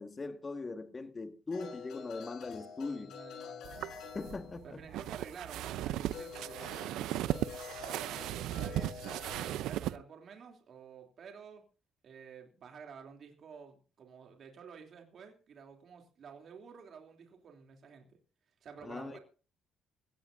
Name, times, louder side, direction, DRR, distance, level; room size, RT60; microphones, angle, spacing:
voice 1, 0.0-3.1 4.1-4.8 18.8-19.2, left 3 dB, 30° left, 1.9 m, -40 dB
sound 1, 1.5-4.9 6.1-9.6, left 6 dB, 70° left, 6.8 m, -47 dB
voice 2, 2.9-3.8 4.6-7.3 7.8-9.0 9.4-11.6 12.0-18.1 18.6-19.2, right 6 dB, 60° right, 3.1 m, -51 dB
sound 2, 3.6-10.0, right 13 dB, 75° right, 0.7 m, -37 dB
21.0 x 16.5 x 2.7 m
supercardioid pair, 60°, 0 cm